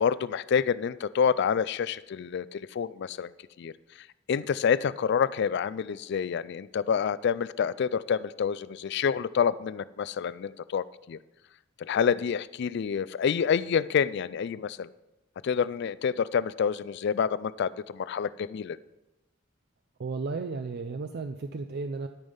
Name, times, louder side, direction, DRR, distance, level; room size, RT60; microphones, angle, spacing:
voice 1, 0.0-3.3 3.6-3.7 4.3-11.2 11.8-14.9 15.4-18.8, left 7 dB, 55° left, 18 dB, 0.3 m, -28 dB
voice 2, 20.0-22.1, right 4 dB, 50° right, 7 dB, 0.4 m, -34 dB
12.0 x 5.4 x 5.4 m, 0.98 s
head